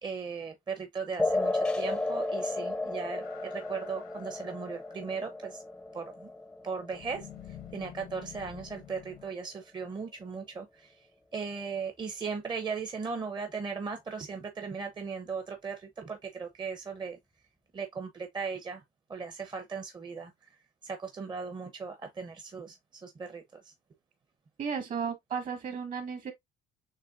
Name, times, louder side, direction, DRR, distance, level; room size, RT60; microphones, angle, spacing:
voice 1, 0.0-5.6 5.9-6.3 6.6-17.2 17.7-18.8 19.1-20.5 20.8-23.7, right 5 dB, 25° right, 0.8 m, -38 dB
sound 1, 1.2-8.2, left 2 dB, 5° left, 0.6 m, -34 dB
sound 2, 3.2-5.2 6.9-9.3, left 10 dB, 85° left, 0.9 m, -49 dB
voice 2, 24.6-26.3, right 6 dB, 55° right, 1.9 m, -34 dB
6.6 x 3.1 x 2.5 m
cardioid pair, 110°, 17 cm